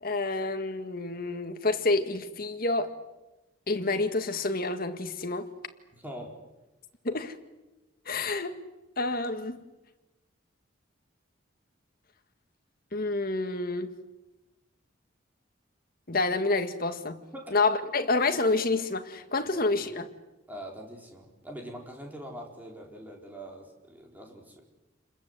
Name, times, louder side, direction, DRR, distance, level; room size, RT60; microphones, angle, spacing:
voice 1, 0.0-3.0 3.7-5.5 7.0-7.4 8.1-8.6 9.0-9.6 12.9-14.0 16.1-17.2 17.5-20.1, left 3 dB, 50° left, 1.8 m, -28 dB
voice 2, 5.9-6.4 17.3-17.5 20.5-24.6, equal, 10° right, 4.5 m, -43 dB
28.5 x 21.0 x 8.2 m
head